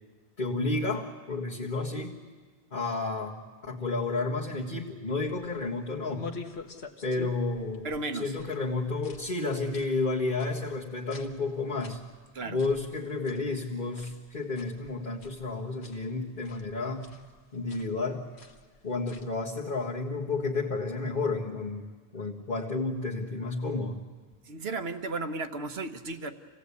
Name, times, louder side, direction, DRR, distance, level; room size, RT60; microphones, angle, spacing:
voice 1, 0.4-2.2 2.7-6.3 7.0-7.9 8.1-12.0 12.4-17.1 17.5-18.3 18.8-24.0, left 3 dB, 45° left, -5 dB, 1.8 m, -31 dB
sound 1, 5.2-19.4, left 4 dB, 75° left, 1.6 m, -49 dB
voice 2, 7.8-8.4 12.3-12.6 24.4-26.3, right 3 dB, 65° right, 8 dB, 1.4 m, -34 dB
27.0 x 17.0 x 8.4 m, 1.4 s
omnidirectional pair, 1.1 m